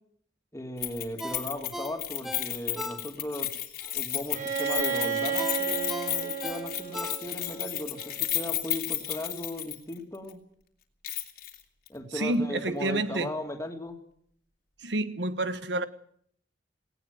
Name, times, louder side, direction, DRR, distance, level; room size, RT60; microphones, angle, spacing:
voice 1, 0.5-3.5 3.9-10.4 11.9-14.0, left 1 dB, 15° left, 2.8 m, -37 dB
Keys jangling, 0.8-10.0 10.3-10.4 11.0-11.6 11.9-12.0, left 12 dB, 60° left, 2.9 m, -33 dB
Ringtone, 1.2-3.5 3.8-3.9 5.4-7.6 8.0-8.1, equal, ahead, 1.2 m, -39 dB
Bowed string instrument, 4.3-8.1, right 7 dB, 45° right, 7.5 m, -32 dB
voice 2, 12.1-13.3 14.8-15.9, right 2 dB, 90° right, 1.4 m, -29 dB
18.5 x 18.0 x 7.9 m
head